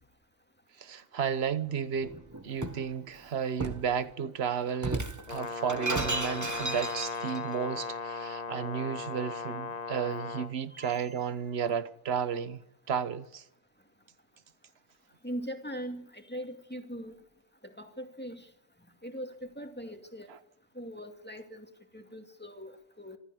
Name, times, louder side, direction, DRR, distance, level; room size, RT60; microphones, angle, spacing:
voice 1, 0.8-2.2 2.4-12.6 12.9-13.4, right 7 dB, 65° right, 1.3 m, -33 dB
Shatter, 2.0-2.9 3.6-3.9 4.8-7.4, right 2 dB, 15° right, 1.1 m, -34 dB
Brass instrument, 5.3-10.5, left 4 dB, 40° left, 1.0 m, -37 dB
voice 2, 10.7-11.4 15.2-17.2 17.6-18.5 19.0-20.3 20.7-21.7 21.9-23.2, equal, 10° left, 2.4 m, -41 dB
26.5 x 13.5 x 8.3 m
omnidirectional pair, 1.2 m